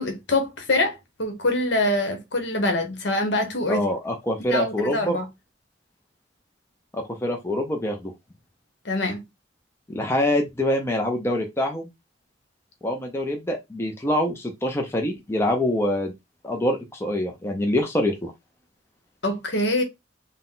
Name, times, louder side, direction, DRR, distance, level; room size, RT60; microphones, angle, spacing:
voice 1, 0.0-3.8 4.5-5.3 8.8-9.2 19.2-19.8, left 1 dB, 65° left, 1.2 m, -24 dB
voice 2, 3.7-5.2 6.9-8.1 9.9-11.9 12.8-16.1 16.4-18.3, left 1 dB, 15° left, 0.5 m, -25 dB
3.9 x 2.2 x 3.8 m
head